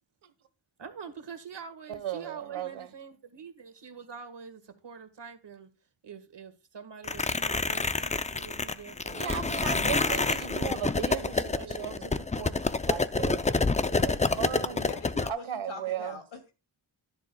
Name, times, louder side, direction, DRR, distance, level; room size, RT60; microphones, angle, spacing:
voice 1, 0.8-5.7 6.0-9.5 10.1-12.1 14.7-15.0, right 6 dB, 60° right, 1.8 m, -45 dB
voice 2, 1.9-2.9 9.1-13.4 13.9-14.8 15.3-16.2, right 9 dB, 80° right, 1.3 m, -36 dB
sound 1, 7.0-15.3, left 3 dB, 15° left, 0.5 m, -28 dB
voice 3, 14.7-16.5, left 5 dB, 85° left, 2.6 m, -43 dB
11.0 x 11.0 x 2.3 m
cardioid pair, 70°, 48 cm